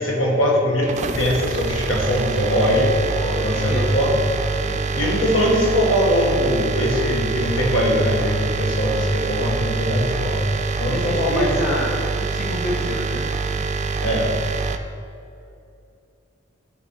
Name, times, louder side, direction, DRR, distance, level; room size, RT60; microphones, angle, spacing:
voice 1, 0.0-2.9 3.4-4.2 4.9-10.5 10.7-11.5 14.0-14.3, equal, 90° left, -2 dB, 1.6 m, -21 dB
sound 1, 0.8-14.8, right 4 dB, 35° right, 0.4 m, -25 dB
voice 2, 3.0-3.8 4.5-5.0 10.8-13.7, left 1 dB, 45° left, -2 dB, 1.3 m, -29 dB
10.5 x 4.5 x 4.4 m, 2.6 s
head